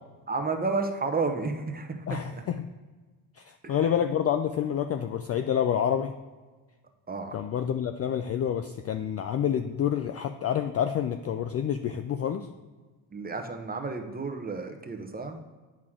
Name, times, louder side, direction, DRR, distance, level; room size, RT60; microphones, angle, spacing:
voice 1, 0.3-2.4 3.6-4.0 7.1-7.4 13.1-15.4, right 4 dB, 20° right, 4 dB, 0.9 m, -32 dB
voice 2, 2.1-2.5 3.4-6.1 7.3-12.5, left 9 dB, 35° left, 8 dB, 0.4 m, -28 dB
8.3 x 6.2 x 3.7 m, 1.3 s
supercardioid pair, 85°, 49 cm